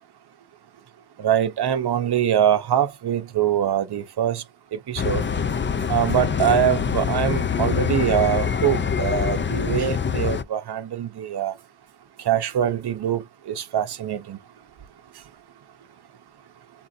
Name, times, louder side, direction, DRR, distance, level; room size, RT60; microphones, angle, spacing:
voice 1, 1.2-4.4 4.7-5.3 5.9-11.5 12.3-13.2 13.5-14.4, right 9 dB, 65° right, 0.8 m, -23 dB
sound 1, 5.0-10.4, left 7 dB, 30° left, 0.4 m, -24 dB
3.7 x 2.5 x 4.1 m
wide cardioid pair, 150°, 42 cm